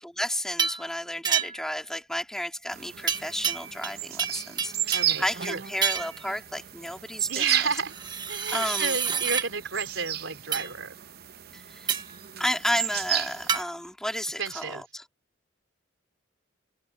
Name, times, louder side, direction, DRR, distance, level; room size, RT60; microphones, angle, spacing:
voice 1, 0.0-7.6 8.5-9.0 11.5-11.9 12.4-15.0, left 1 dB, 5° left, 2.3 m, -32 dB
sound 1, 0.6-0.9 1.2-1.7 3.1-5.2 5.8-6.2 7.9-9.5 10.5-10.7 11.9-12.2 13.5-13.6, right 7 dB, 25° right, 1.1 m, -28 dB
sound 2, 2.7-13.6, right 11 dB, 55° right, 0.7 m, -34 dB
voice 2, 4.9-5.6 7.3-7.9 8.3-11.0 14.4-14.8, right 5 dB, 80° right, 3.7 m, -31 dB
head